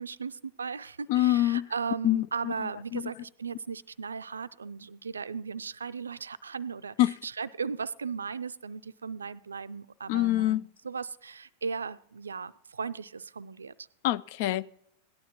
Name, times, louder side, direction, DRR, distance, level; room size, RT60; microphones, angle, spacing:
voice 1, 0.0-7.0 7.2-13.9, right 5 dB, 75° right, 0.4 m, -37 dB
voice 2, 1.1-1.6 2.0-3.1 7.0-7.1 10.1-10.6 14.0-14.7, left 15 dB, 50° left, 0.4 m, -26 dB
17.0 x 11.5 x 2.9 m
figure-of-eight pair, 90°, 0 cm